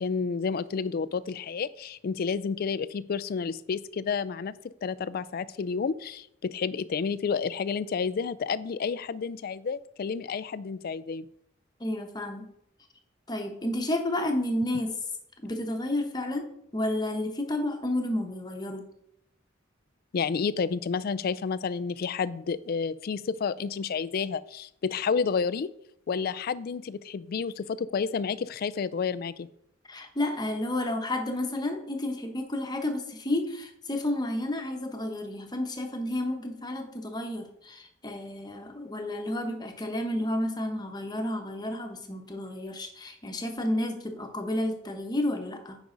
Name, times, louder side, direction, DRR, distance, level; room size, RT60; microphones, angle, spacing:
voice 1, 0.0-4.5 4.8-11.2 20.1-25.7 26.1-29.5, left 5 dB, 50° left, 17 dB, 0.3 m, -30 dB
voice 2, 11.8-12.5 13.3-15.0 15.4-16.4 16.7-18.9 29.9-45.8, left 1 dB, 20° left, 4 dB, 1.0 m, -31 dB
9.5 x 5.2 x 3.9 m, 0.74 s
head